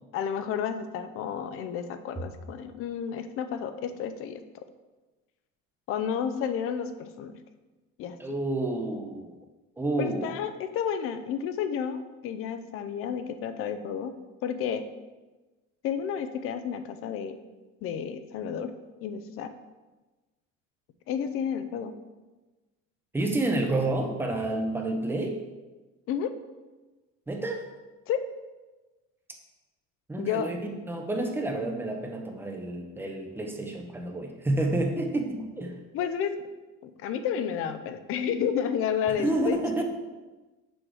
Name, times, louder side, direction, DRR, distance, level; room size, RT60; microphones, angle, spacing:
voice 1, 0.1-4.4 5.9-7.3 8.0-8.2 10.0-14.1 14.4-14.8 15.8-17.4 17.8-18.7 19.0-19.5 21.1-21.9 26.1-26.3 28.1-28.3 30.2-30.5 35.9-36.3 36.8-39.6, left 8 dB, 45° left, 10 dB, 0.5 m, -31 dB
voice 2, 8.2-9.3 9.8-10.3 23.1-25.4 27.3-27.6 30.1-30.6 30.9-35.7 39.2-39.8, right 2 dB, 5° right, 2 dB, 0.7 m, -29 dB
6.2 x 4.6 x 4.9 m, 1.2 s
cardioid pair, 160°, 31 cm